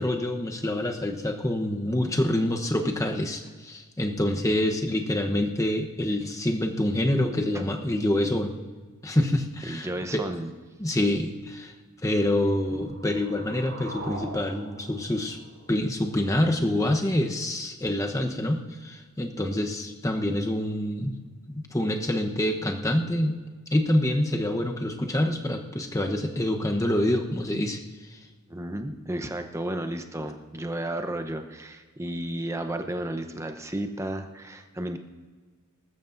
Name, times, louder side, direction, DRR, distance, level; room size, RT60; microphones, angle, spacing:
voice 1, 0.0-8.6 9.0-10.2 10.8-11.7 12.0-15.4 15.7-21.2 21.5-23.4 23.7-27.8 28.1-28.2, left 1 dB, 15° left, 3 dB, 0.9 m, -26 dB
voice 2, 9.7-10.5 12.8-12.9 28.5-35.0, right 1 dB, 15° right, 6 dB, 0.8 m, -33 dB
sound 1, 12.6-16.3, right 2 dB, 75° right, 5.0 m, -43 dB
21.0 x 13.0 x 2.6 m, 1.4 s
head